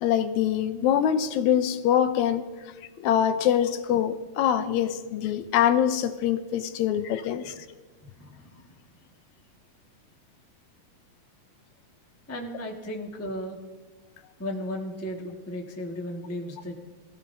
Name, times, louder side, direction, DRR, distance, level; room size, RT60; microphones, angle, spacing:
voice 1, 0.0-2.4 3.0-7.6, left 9 dB, 80° left, 1.9 m, -24 dB
voice 2, 8.2-8.6 12.3-13.6 14.4-16.8, equal, 10° left, 0.6 m, -35 dB
23.0 x 15.0 x 2.7 m
omnidirectional pair, 3.4 m